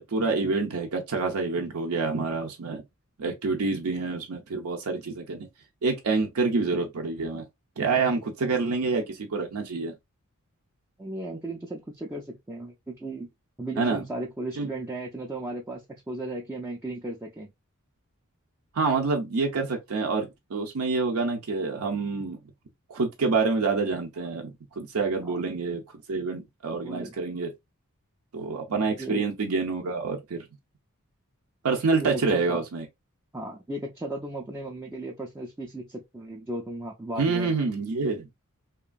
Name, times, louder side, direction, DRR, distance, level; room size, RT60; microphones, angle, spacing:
voice 1, 0.0-2.8 3.2-5.5 5.8-7.5 7.8-9.9 13.8-14.0 14.6-14.7 18.7-22.4 22.9-27.5 28.3-30.4 31.6-32.8 37.2-38.3, right 4 dB, 75° right, 0.5 m, -27 dB
voice 2, 11.0-13.3 13.6-17.5 25.2-25.4 26.8-27.2 29.0-29.2 32.0-32.6 33.3-37.5, right 1 dB, 10° right, 0.4 m, -35 dB
2.9 x 2.4 x 2.3 m
head